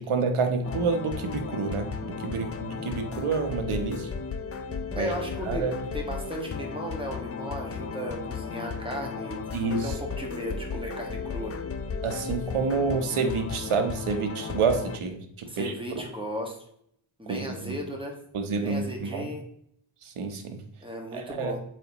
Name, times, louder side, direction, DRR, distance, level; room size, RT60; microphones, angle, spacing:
voice 1, 0.0-4.1 4.9-5.1 5.5-5.7 9.5-9.9 12.0-15.7 17.3-17.8 18.3-19.3 20.2-20.6 21.1-21.5, right 4 dB, 80° right, 5 dB, 1.1 m, -28 dB
sound 1, 0.6-15.0, left 5 dB, 30° left, 0.5 m, -35 dB
voice 2, 5.0-9.4 9.8-11.6 15.5-16.6 17.2-18.1 18.6-19.4 20.8-21.6, equal, 10° right, 0 dB, 1.7 m, -36 dB
7.7 x 4.2 x 3.0 m, 0.69 s
cardioid pair, 75°, 50 cm